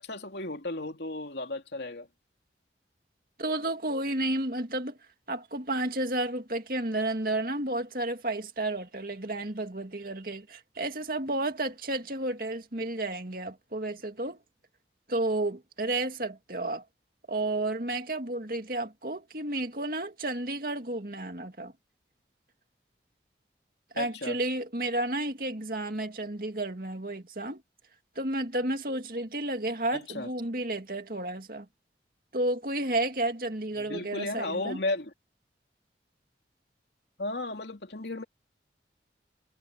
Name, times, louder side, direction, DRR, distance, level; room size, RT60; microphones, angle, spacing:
voice 1, 0.0-2.1 23.9-24.4 29.9-30.3 33.8-35.1 37.2-38.2, left 2 dB, 75° left, 2.8 m, -34 dB
voice 2, 3.4-5.0 5.3-14.4 15.1-16.8 17.3-21.7 23.9-27.6 28.2-31.7 32.3-34.8, right 2 dB, 50° right, 2.3 m, -32 dB
head